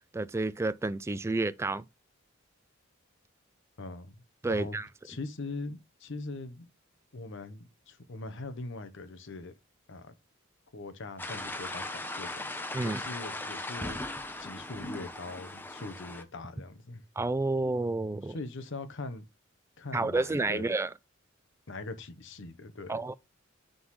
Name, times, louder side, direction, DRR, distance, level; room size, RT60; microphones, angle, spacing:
voice 1, 0.1-1.8 4.4-4.9 12.7-13.0 17.2-18.4 19.9-20.9 22.9-23.1, right 2 dB, 15° right, 0.3 m, -30 dB
voice 2, 3.8-4.2 4.5-4.8 5.0-6.7 7.1-9.5 9.9-10.1 10.7-14.0 14.4-17.0 18.3-19.3 19.8-20.6 21.7-23.0, left 3 dB, 65° left, 1.0 m, -41 dB
sound 1, 11.2-16.2, left 2 dB, 10° left, 0.7 m, -38 dB
9.6 x 3.9 x 3.1 m
head